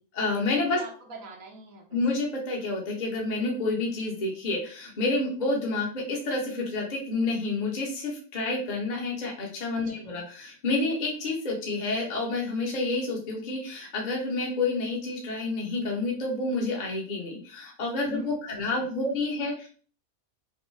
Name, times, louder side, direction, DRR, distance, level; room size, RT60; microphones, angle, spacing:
voice 1, 0.1-0.8 1.9-19.7, left 2 dB, 35° left, -2 dB, 1.0 m, -29 dB
voice 2, 0.7-2.0 9.8-10.2 18.1-18.9, right 3 dB, 70° right, 0 dB, 1.2 m, -46 dB
5.3 x 2.1 x 3.2 m, 0.42 s
omnidirectional pair, 1.5 m